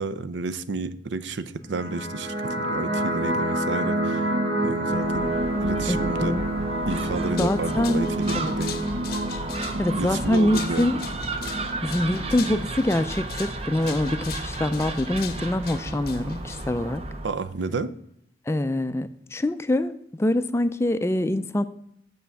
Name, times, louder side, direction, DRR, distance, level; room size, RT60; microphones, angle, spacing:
voice 1, 0.0-4.3 4.6-5.3 5.6-6.3 6.9-8.8 9.7-10.9 17.2-17.9, right 3 dB, 80° right, 13 dB, 0.5 m, -30 dB
sound 1, 1.7-12.6, right 1 dB, 55° right, 1.3 m, -28 dB
Gull seagull, 4.9-17.3, right 2 dB, 35° right, 0.6 m, -34 dB
voice 2, 5.9-6.4 7.4-8.0 8.3-8.5 9.5-11.0 11.8-17.0 18.5-21.6, left 1 dB, 15° left, 11 dB, 0.3 m, -25 dB
sound 2, 7.1-17.0, left 10 dB, 55° left, 0.7 m, -41 dB
7.0 x 5.7 x 6.3 m, 0.72 s
head